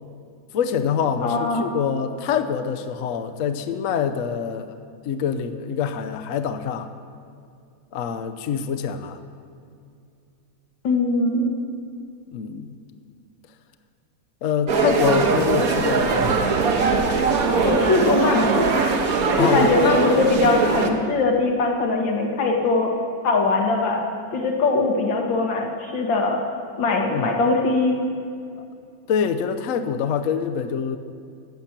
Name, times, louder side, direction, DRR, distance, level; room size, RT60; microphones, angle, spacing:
voice 1, 0.5-4.8 5.0-6.9 7.9-9.2 12.3-12.7 14.4-16.3 19.4-19.7 27.1-27.3 28.6-28.7 29.1-31.0, left 7 dB, 60° left, 8 dB, 0.8 m, -25 dB
voice 2, 1.2-1.7 10.8-11.5 17.6-19.0 19.4-22.9 23.2-24.0 24.3-26.4 26.8-28.0, left 3 dB, 80° left, 1 dB, 2.3 m, -21 dB
sound 1, 14.7-20.9, right 4 dB, 55° right, 1.4 m, -21 dB
15.5 x 5.9 x 8.9 m, 2.5 s
omnidirectional pair, 2.0 m